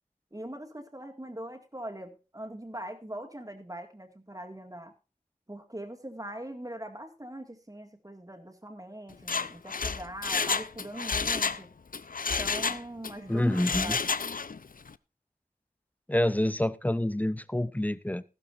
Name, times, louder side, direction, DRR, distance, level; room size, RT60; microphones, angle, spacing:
voice 1, 0.3-4.9 5.5-11.7 12.4-14.0, right 1 dB, 20° right, 2.0 m, -42 dB
Mechanisms, 9.1-11.6 11.9-13.1 13.5-14.6 14.9-15.0, left 5 dB, 60° left, 0.5 m, -30 dB
voice 2, 13.3-14.0 16.1-18.2, left 1 dB, 10° left, 0.7 m, -27 dB
14.5 x 12.5 x 2.6 m
wide cardioid pair, 55°, 16 cm